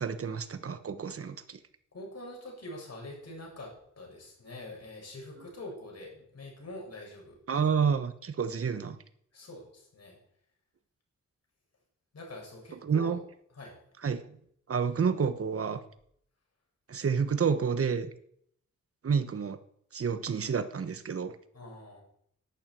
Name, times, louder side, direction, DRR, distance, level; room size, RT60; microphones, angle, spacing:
voice 1, 0.0-1.6 7.5-9.0 12.8-13.2 14.0-14.4 14.7-15.8 16.9-18.1 19.0-19.6 19.9-21.4, right 6 dB, 50° right, 11 dB, 1.1 m, -29 dB
voice 2, 1.9-7.4 9.3-10.2 12.1-13.2 13.6-13.8 21.5-22.0, left 1 dB, 55° left, -1 dB, 7.0 m, -45 dB
11.5 x 9.1 x 9.2 m, 0.69 s
wide cardioid pair, 170°, 30 cm